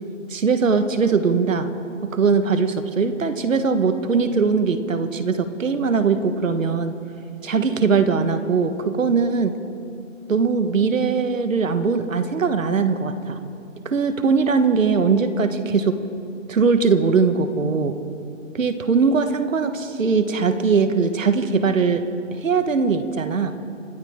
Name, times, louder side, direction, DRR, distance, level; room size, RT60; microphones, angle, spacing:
voice 1, 0.3-1.7 2.1-6.9 7.4-9.6 10.3-13.4 13.8-16.0 16.5-17.9 18.5-22.0 22.4-23.5, right 5 dB, 80° right, 9 dB, 1.5 m, -20 dB
27.0 x 13.0 x 3.7 m, 2.5 s
hypercardioid pair, 175°, 39 cm